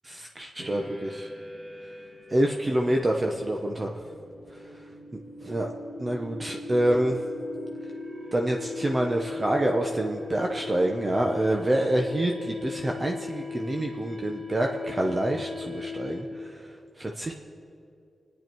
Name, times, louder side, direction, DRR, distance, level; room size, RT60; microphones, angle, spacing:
voice 1, 0.1-1.3 2.3-3.9 5.4-5.7 6.0-7.2 8.3-16.3 17.0-17.3, right 1 dB, 30° right, 1 dB, 1.0 m, -27 dB
sound 1, 0.6-16.5, left 3 dB, 45° right, 1.9 m, -39 dB
24.5 x 10.0 x 4.6 m, 2.6 s
wide cardioid pair, 85°, 0 cm